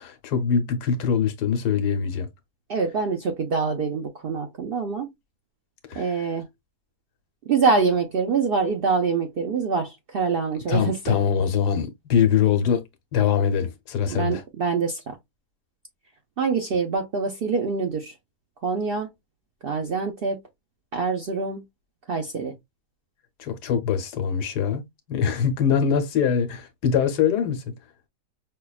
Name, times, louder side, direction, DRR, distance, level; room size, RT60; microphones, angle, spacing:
voice 1, 0.0-2.3 5.9-6.1 10.7-12.8 13.1-14.4 23.4-24.8 25.1-27.7, left 7 dB, 80° left, 1.3 m, -23 dB
voice 2, 2.7-5.1 5.9-6.5 7.5-11.2 14.1-15.2 16.4-18.1 18.6-19.1 19.6-20.4 20.9-21.6 22.1-22.5, right 5 dB, 90° right, 0.5 m, -25 dB
5.5 x 2.2 x 2.3 m
omnidirectional pair, 1.8 m